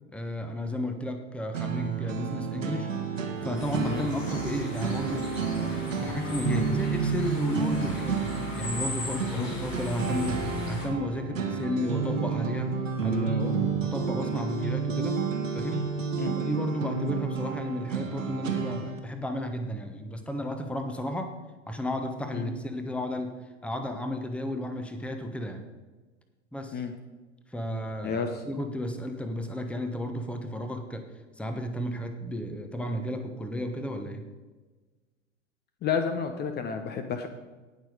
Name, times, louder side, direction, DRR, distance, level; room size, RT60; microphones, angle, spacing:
voice 1, 0.1-2.9 3.4-5.3 5.5-12.7 13.0-15.2 15.5-15.9 16.3-21.3 21.7-23.3 23.6-25.6 26.5-26.8 27.5-31.1 31.4-34.3, left 1 dB, 5° left, 6 dB, 1.1 m, -33 dB
sound 1, 1.5-19.0, right 6 dB, 75° right, 1.8 m, -30 dB
sound 2, 3.5-10.9, left 2 dB, 85° left, 3.5 m, -37 dB
voice 2, 35.8-37.3, left 6 dB, 25° left, 7 dB, 0.9 m, -30 dB
18.5 x 6.2 x 4.9 m, 1.3 s
figure-of-eight pair, 95°, 38 cm